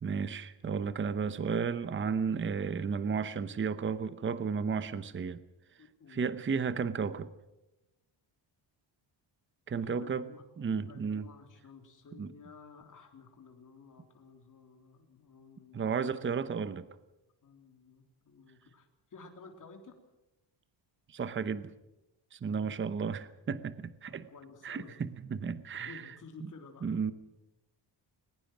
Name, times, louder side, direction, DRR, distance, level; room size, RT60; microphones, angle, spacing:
voice 1, 0.0-5.4 6.1-7.3 9.7-10.3 10.6-11.3 12.2-12.3 15.7-16.9 21.1-21.7 22.3-24.3 24.6-26.0 26.8-27.1, right 6 dB, 25° right, 13 dB, 0.8 m, -33 dB
voice 2, 5.8-6.3 9.7-10.4 10.7-16.2 17.4-20.0 24.0-25.0 25.7-26.9, left 4 dB, 40° left, 4 dB, 3.4 m, -53 dB
21.5 x 20.5 x 6.1 m, 0.97 s
wide cardioid pair, 175°, 48 cm